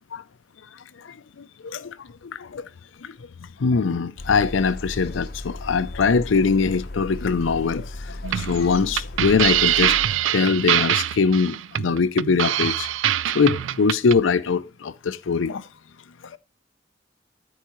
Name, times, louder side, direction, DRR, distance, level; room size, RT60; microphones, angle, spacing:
voice 1, 1.6-1.9 2.2-2.7 3.0-3.1 3.6-10.0 10.3-12.9 13.3-15.6, left 5 dB, 85° left, 0.5 m, -22 dB
sound 1, 4.2-10.1, left 2 dB, 55° left, 0.8 m, -35 dB
sound 2, 8.2-14.1, right 11 dB, 85° right, 0.4 m, -23 dB
13.5 x 4.7 x 3.0 m
head